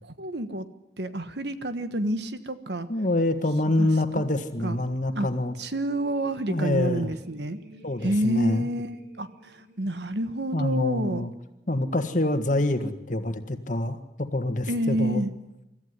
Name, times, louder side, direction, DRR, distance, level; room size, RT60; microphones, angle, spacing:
voice 1, 0.0-0.7 1.0-2.9 3.6-3.9 4.1-4.2 4.6-4.8 5.1-5.3 5.6-7.6 8.0-8.9 9.2-11.2 14.7-15.3, right 1 dB, 70° right, 11 dB, 1.4 m, -29 dB
voice 2, 2.9-5.5 6.5-7.1 7.8-8.7 10.5-11.3 11.7-15.2, left 1 dB, 45° left, 8 dB, 1.7 m, -26 dB
sound 1, 6.1-11.0, right 2 dB, 45° right, 5.3 m, -52 dB
25.5 x 14.5 x 9.9 m, 0.91 s
head